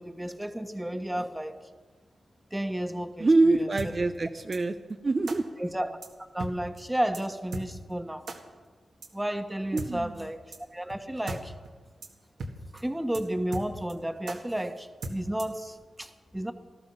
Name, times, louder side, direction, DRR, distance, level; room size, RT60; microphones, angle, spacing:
voice 1, 0.0-1.5 2.5-3.3 3.5-3.9 5.6-6.0 6.3-8.2 9.1-10.4 10.7-11.5 12.7-16.5, right 1 dB, 10° right, 7 dB, 1.5 m, -32 dB
voice 2, 3.2-4.7 5.0-5.5 9.7-10.3, right 2 dB, 45° right, 6 dB, 0.7 m, -25 dB
sound 1, 3.8-3.9 4.5-4.6 5.3-5.4 6.0-6.1 6.4-6.5 6.8-6.9 7.1-7.2 7.5-7.7 8.3-8.4 9.0-9.1 9.8-9.9 10.5-10.6 10.9-11.0 11.3-11.4 11.7-11.8 12.0-12.1 12.4-12.5 12.8-12.9 13.1-13.2 13.5-13.9 14.3-14.4 15.0-15.6, right 2 dB, 75° right, 1.9 m, -37 dB
19.0 x 13.0 x 5.8 m, 1.4 s
cardioid pair, 50°, 0 cm